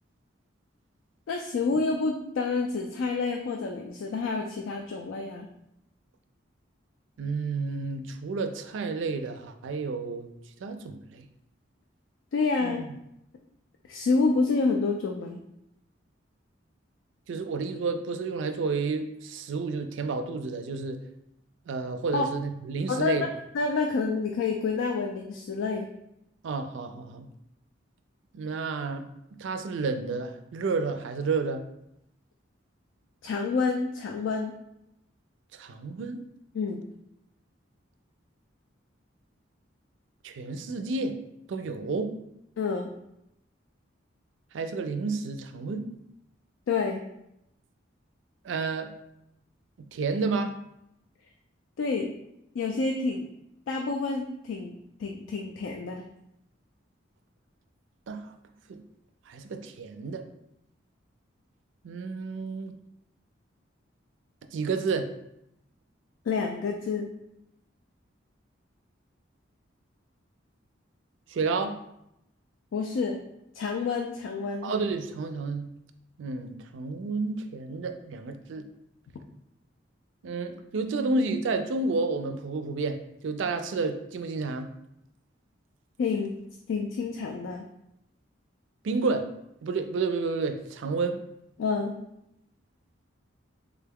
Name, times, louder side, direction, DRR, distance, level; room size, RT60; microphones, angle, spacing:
voice 1, 1.3-5.5 12.3-12.9 13.9-15.4 22.1-22.3 22.9-23.3 23.5-25.9 33.2-34.5 36.5-36.8 42.6-42.9 46.7-47.0 51.8-52.1 52.5-53.2 53.7-54.7 55.0-56.0 66.3-67.1 72.7-73.2 73.5-74.7 86.0-86.3 86.7-87.6 91.6-92.0, left 4 dB, 80° left, 2 dB, 0.3 m, -28 dB
voice 2, 7.2-10.3 10.6-11.3 12.6-12.9 17.3-21.0 21.7-23.2 26.4-27.3 28.3-29.1 29.4-31.6 35.5-36.2 40.2-41.2 41.5-42.1 44.5-45.9 48.4-48.9 49.8-50.5 58.1-58.2 58.7-58.8 59.3-60.2 61.8-62.7 64.5-65.1 71.3-71.8 74.6-75.7 76.2-78.7 80.2-84.7 88.8-89.3 89.6-91.2, right 4 dB, 70° right, 8 dB, 0.4 m, -30 dB
3.6 x 2.3 x 3.4 m, 0.81 s
head